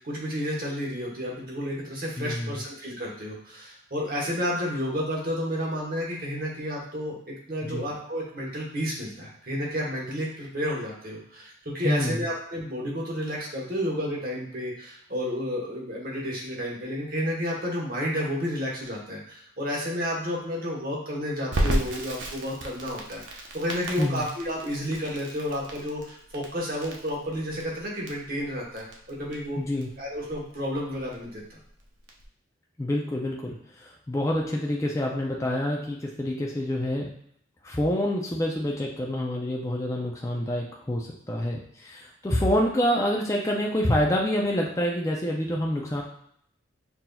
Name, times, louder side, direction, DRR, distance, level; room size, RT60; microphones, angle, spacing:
voice 1, 0.0-29.6 30.0-31.6, equal, 45° right, -3 dB, 1.1 m, -31 dB
voice 2, 2.2-2.6 7.6-7.8 11.8-12.2 24.0-24.2 29.6-29.9 32.8-37.1 37.6-46.0, left 1 dB, 15° left, -2 dB, 0.4 m, -27 dB
Crackle, 21.5-32.3, equal, 75° right, 0.7 m, -34 dB
5.8 x 2.6 x 2.3 m, 0.68 s
head